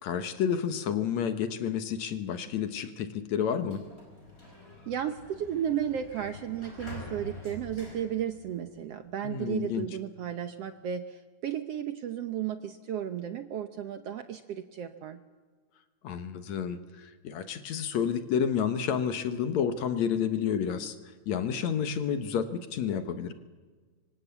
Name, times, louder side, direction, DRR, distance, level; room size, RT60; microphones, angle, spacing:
voice 1, 0.0-3.8 9.2-9.9 16.0-21.0 21.3-23.3, left 8 dB, 65° left, 9 dB, 2.3 m, -30 dB
Sliding door, 3.4-9.0, left 1 dB, 20° left, 5.1 m, -46 dB
voice 2, 4.9-15.2, right 9 dB, 65° right, 8 dB, 1.6 m, -34 dB
25.5 x 25.0 x 8.3 m, 1.4 s
omnidirectional pair, 3.7 m